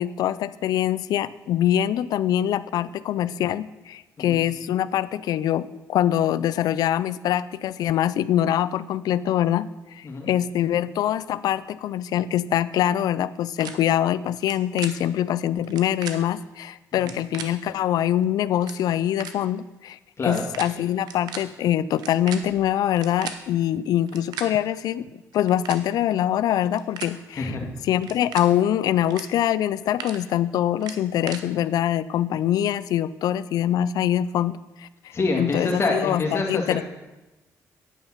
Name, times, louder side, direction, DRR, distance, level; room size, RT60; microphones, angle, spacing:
voice 1, 0.0-25.1 25.3-27.6 27.8-34.9 35.4-36.8, left 11 dB, 75° left, 17 dB, 0.3 m, -24 dB
sound 1, 13.6-13.7 14.4-14.5 14.8-14.9 15.6-16.1 16.9-17.5 18.2-18.3 18.5-18.8 19.2-19.3 20.2-20.7 21.0-21.4 21.9-23.4 24.0-24.5 25.3-25.8 26.6-27.1 28.0-28.4 29.0-29.2 29.6-30.2 30.8-31.4, right 8 dB, 85° right, 0.8 m, -36 dB
voice 2, 35.1-36.8, left 3 dB, 40° left, 1 dB, 2.0 m, -26 dB
9.3 x 5.6 x 5.7 m, 1.0 s
cardioid pair, 80°, 7 cm